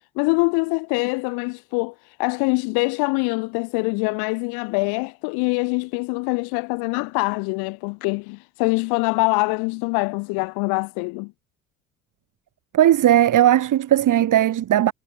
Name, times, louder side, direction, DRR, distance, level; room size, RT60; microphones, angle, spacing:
voice 1, 0.2-11.3, left 31 dB, 65° left, 2.4 m, -24 dB
voice 2, 12.7-14.9, right 12 dB, 50° right, 3.3 m, -17 dB
hypercardioid pair, 60°, 40 cm